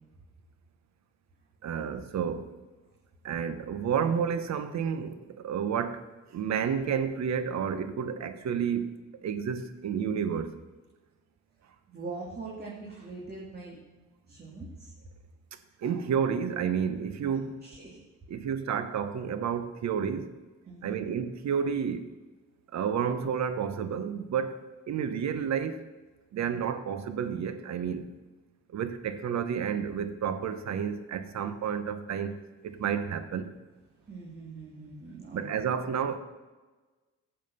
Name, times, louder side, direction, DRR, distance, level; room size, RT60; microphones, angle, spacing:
voice 1, 1.6-2.5 3.2-8.9 9.2-10.5 15.8-17.6 18.3-20.3 20.8-22.1 22.7-25.8 26.3-28.1 28.7-32.3 32.6-33.5 35.3-36.2, right 7 dB, 65° right, 1.1 m, -30 dB
voice 2, 11.9-13.8 14.3-14.9 17.3-18.0 20.7-21.0 26.4-26.6 34.1-35.5, right 3 dB, 30° right, 2.7 m, -42 dB
14.5 x 7.6 x 5.6 m
cardioid pair, 90°, 30 cm